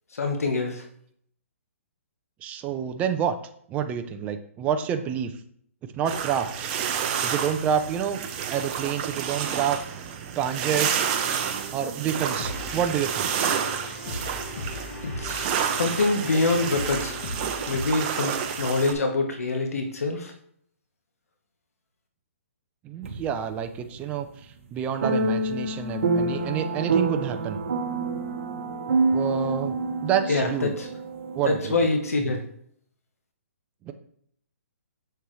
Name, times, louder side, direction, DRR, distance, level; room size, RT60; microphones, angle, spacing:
voice 1, 0.1-0.8 15.2-17.2 17.7-20.3 30.3-30.9 31.4-32.4, left 3 dB, 85° left, 4 dB, 1.3 m, -25 dB
voice 2, 2.4-3.3 3.7-5.3 5.9-6.7 7.2-8.2 8.5-9.8 10.4-11.0 11.7-13.3 22.8-24.3 24.7-27.6 29.1-29.8 30.0-30.7 31.3-31.7 33.9-34.0, right 8 dB, 20° right, 7 dB, 0.5 m, -28 dB
sound 1, 6.1-18.9, right 8 dB, 35° right, 0.9 m, -30 dB
sound 2, 12.4-17.9, left 2 dB, 45° left, 1.4 m, -37 dB
sound 3, 23.0-23.5 25.0-31.8, right 3 dB, 60° right, 1.2 m, -27 dB
7.0 x 6.5 x 3.2 m, 0.66 s
hypercardioid pair, 145°, 8 cm